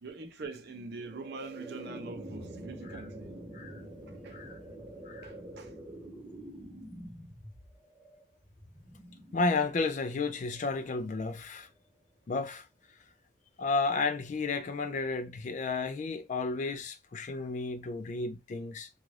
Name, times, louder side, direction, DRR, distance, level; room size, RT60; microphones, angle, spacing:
voice 1, 0.0-3.3 4.1-4.4 5.2-5.7, right 3 dB, 50° right, 0.5 m, -44 dB
sound 1, 0.7-11.8, right 1 dB, 10° right, 0.7 m, -47 dB
voice 2, 9.3-11.7 12.3-12.7 13.6-18.9, left 3 dB, 35° left, 0.3 m, -32 dB
2.6 x 2.3 x 3.2 m
head